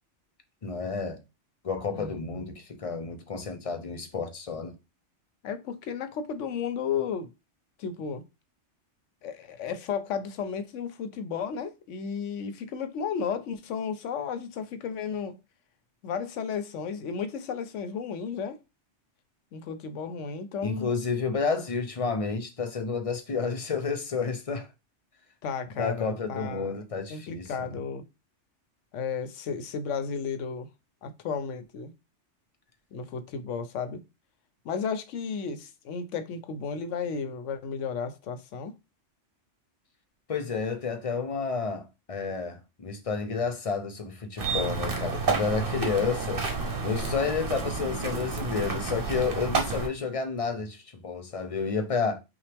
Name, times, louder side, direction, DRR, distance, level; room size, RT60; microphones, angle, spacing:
voice 1, 0.6-1.2 1.6-4.7 20.6-24.7 25.8-27.7 40.3-46.4 46.8-52.2, left 5 dB, 35° left, 0.6 m, -30 dB
voice 2, 1.9-2.5 5.4-7.3 7.8-8.2 9.2-15.4 16.0-18.6 19.5-20.9 25.4-26.7 27.1-28.0 28.9-30.7 31.0-31.9 32.9-34.0 34.6-38.7, left 6 dB, 90° left, 1.0 m, -33 dB
sound 1, 44.4-49.9, right 4 dB, 50° right, 1.1 m, -30 dB
5.7 x 2.3 x 3.4 m
omnidirectional pair, 1.2 m